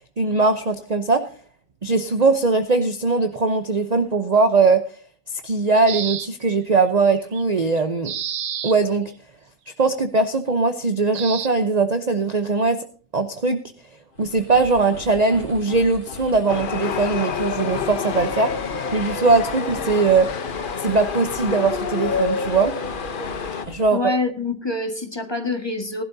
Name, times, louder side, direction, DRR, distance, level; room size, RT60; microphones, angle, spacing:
voice 1, 0.2-1.2 1.8-4.8 5.3-8.1 8.6-9.1 9.8-12.8 13.1-13.6 14.2-18.5 18.9-20.3 20.8-22.7 23.7-24.0, right 3 dB, 35° right, 8 dB, 0.8 m, -20 dB
sound 1, 5.9-6.6 7.1-7.4 7.8-8.8 11.1-11.5, right 9 dB, 80° right, 1.4 m, -30 dB
sound 2, 14.1-24.0, left 2 dB, 80° left, 5.2 m, -39 dB
Chatter / Subway metro underground, 16.5-23.7, left 6 dB, 40° left, 0.9 m, -28 dB
voice 2, 23.9-26.0, left 2 dB, 15° left, 5 dB, 1.7 m, -25 dB
18.5 x 12.0 x 2.7 m, 0.43 s
omnidirectional pair, 1.6 m